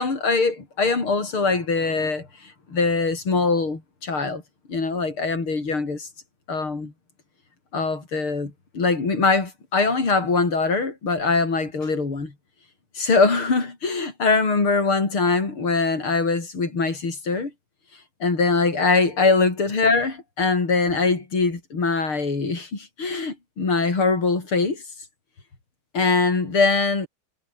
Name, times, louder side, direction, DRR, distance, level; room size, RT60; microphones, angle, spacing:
voice 1, 0.0-4.4 4.7-6.1 6.5-6.9 7.7-12.3 13.0-17.5 18.2-24.8 25.9-27.1, left 4 dB, 90° left, 5.6 m, -22 dB
omnidirectional pair, 2.3 m